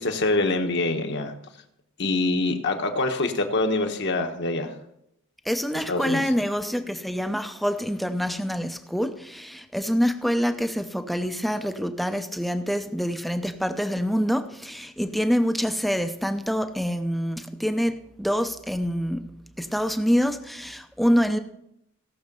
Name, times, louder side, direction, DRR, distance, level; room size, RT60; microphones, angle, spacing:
voice 1, 0.0-1.3 2.0-4.7 5.9-6.2, left 2 dB, 55° left, 1.2 m, -25 dB
voice 2, 5.5-19.3 19.6-21.4, equal, ahead, 0.6 m, -26 dB
16.5 x 6.4 x 5.4 m
head